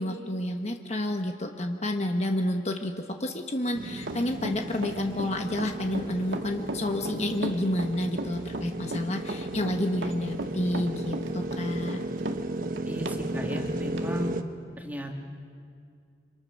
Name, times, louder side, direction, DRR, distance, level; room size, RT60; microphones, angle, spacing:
voice 1, 0.0-12.0, left 1 dB, 35° left, 4 dB, 1.3 m, -30 dB
sound 1, 3.7-14.4, right 1 dB, 50° right, 1.2 m, -35 dB
Run, 4.0-13.2 13.5-13.6 14.0-14.1, right 2 dB, 85° right, 1.9 m, -36 dB
voice 2, 12.8-14.4 14.8-15.2, equal, 10° right, 1 dB, 2.3 m, -36 dB
30.0 x 26.5 x 6.5 m, 2.3 s
head